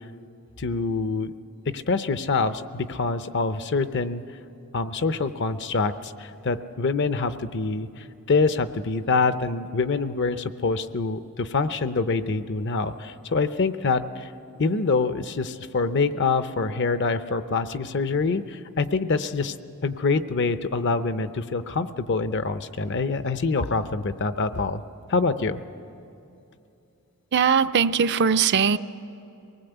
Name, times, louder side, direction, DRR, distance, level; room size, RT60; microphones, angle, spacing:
voice 1, 0.6-1.3 1.7-4.2 4.7-14.3 14.6-19.5 19.8-24.8 25.1-25.6, left 4 dB, 55° left, 12 dB, 0.6 m, -25 dB
voice 2, 27.3-28.8, right 6 dB, 50° right, 11 dB, 0.5 m, -20 dB
23.5 x 19.0 x 8.0 m, 2.8 s
head